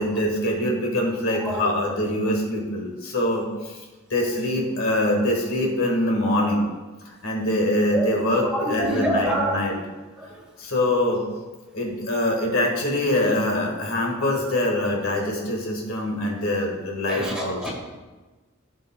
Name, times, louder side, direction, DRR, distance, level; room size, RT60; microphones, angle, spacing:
voice 1, 0.0-3.8 4.1-6.7 7.1-9.8 10.6-11.2 11.7-17.7, left 1 dB, 80° left, 0 dB, 1.7 m, -24 dB
voice 2, 8.7-9.5 17.2-17.7, right 1 dB, 5° right, -4 dB, 1.8 m, -25 dB
15.0 x 5.3 x 2.3 m, 1.2 s
head